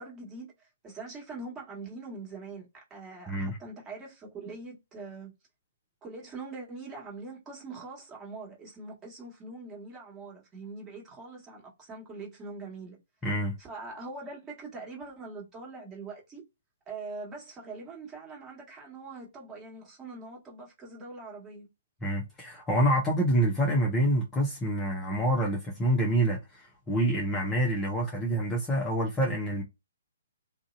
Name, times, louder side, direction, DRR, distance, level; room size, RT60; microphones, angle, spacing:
voice 1, 0.0-5.3 6.0-13.0 13.6-16.4 16.9-21.7, right 3 dB, 15° right, 1.4 m, -43 dB
voice 2, 3.3-3.6 13.2-13.5 22.0-29.6, right 1 dB, 15° left, 0.7 m, -27 dB
2.5 x 2.0 x 2.6 m
figure-of-eight pair, 130°, 0 cm